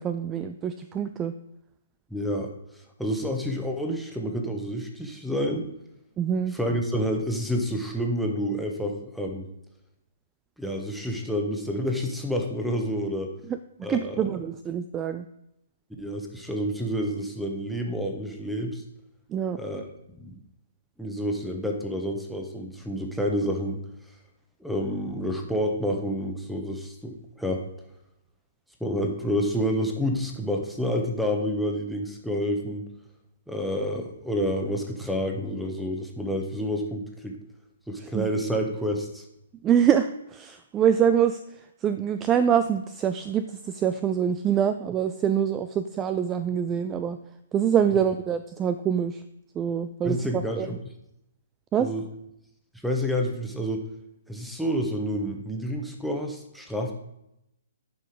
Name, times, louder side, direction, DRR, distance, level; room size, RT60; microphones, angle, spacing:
voice 1, 0.0-1.3 6.2-6.5 13.5-15.3 19.3-19.6 38.0-38.3 39.6-47.2 47.5-49.2 49.5-50.8 51.7-51.9, right 8 dB, 20° right, 11 dB, 0.4 m, -25 dB
voice 2, 2.1-2.5 3.0-5.7 6.5-9.5 10.6-13.3 13.8-14.2 16.0-18.8 19.5-19.8 20.1-20.4 21.0-23.8 24.6-27.6 28.8-32.9 33.5-37.3 37.9-39.2 50.0-50.6 51.8-52.0 52.8-53.8 54.3-56.9, equal, ahead, 2 dB, 1.3 m, -29 dB
9.9 x 5.6 x 5.0 m, 0.83 s
figure-of-eight pair, 125°, 0 cm